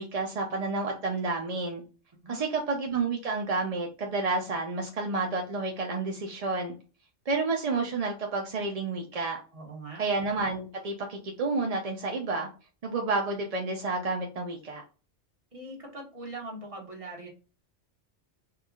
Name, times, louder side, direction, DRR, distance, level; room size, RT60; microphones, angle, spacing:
voice 1, 0.0-1.8 2.3-6.7 7.3-9.4 10.0-12.5 12.8-14.8, right 3 dB, 45° right, 0.5 m, -30 dB
voice 2, 9.5-10.1 15.5-17.3, right 2 dB, 30° right, 1.2 m, -41 dB
4.5 x 2.4 x 2.3 m
omnidirectional pair, 1.3 m